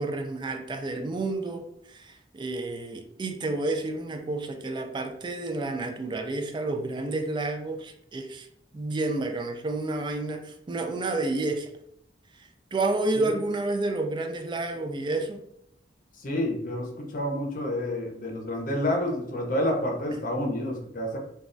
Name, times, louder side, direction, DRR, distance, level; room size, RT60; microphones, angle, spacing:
voice 1, 0.0-8.5 8.7-11.7 12.7-15.4, right 2 dB, 25° right, 5 dB, 0.3 m, -30 dB
voice 2, 16.1-21.2, left 1 dB, 50° left, 1 dB, 0.6 m, -29 dB
3.1 x 2.3 x 2.5 m, 0.75 s
head